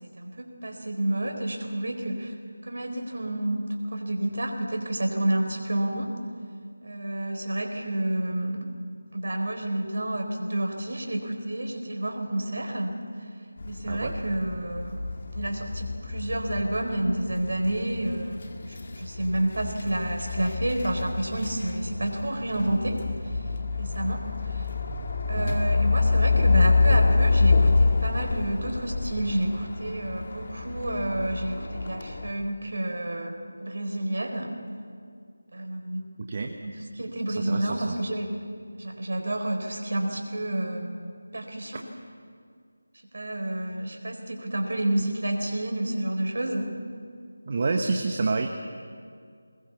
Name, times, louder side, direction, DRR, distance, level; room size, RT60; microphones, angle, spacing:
voice 1, 0.0-2.3 2.6-6.1 6.8-8.7 9.1-13.0 13.7-15.0 15.3-18.4 18.7-23.4 23.8-24.7 25.3-34.6 35.5-36.0 36.6-38.3 38.8-41.0 41.3-41.8 43.1-46.7, right 1 dB, 60° right, 3 dB, 4.3 m, -29 dB
sound 1, 13.6-32.3, left 4 dB, 45° left, 2.1 m, -27 dB
voice 2, 36.2-36.5 37.3-38.0 47.5-48.5, right 3 dB, 35° right, 4 dB, 1.4 m, -28 dB
23.5 x 21.0 x 7.2 m, 2.2 s
figure-of-eight pair, 165°, 0 cm